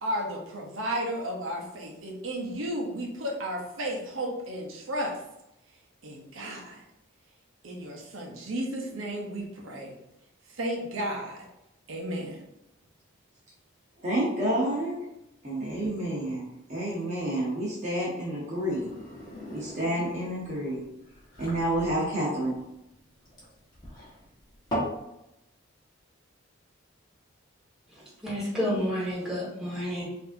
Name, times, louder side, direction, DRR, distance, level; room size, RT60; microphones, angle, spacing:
voice 1, 0.0-5.2 6.0-6.8 7.6-10.0 10.5-11.5 11.9-12.4, equal, 75° right, 0 dB, 0.7 m, -33 dB
voice 2, 14.0-14.9 15.4-18.9 19.5-20.8 21.4-22.6, right 1 dB, 35° right, -6 dB, 0.8 m, -29 dB
sound 1, 18.5-25.0, equal, 20° left, 1.2 m, -39 dB
voice 3, 27.9-30.0, equal, ahead, -8 dB, 1.4 m, -30 dB
4.7 x 2.7 x 2.6 m, 0.87 s
head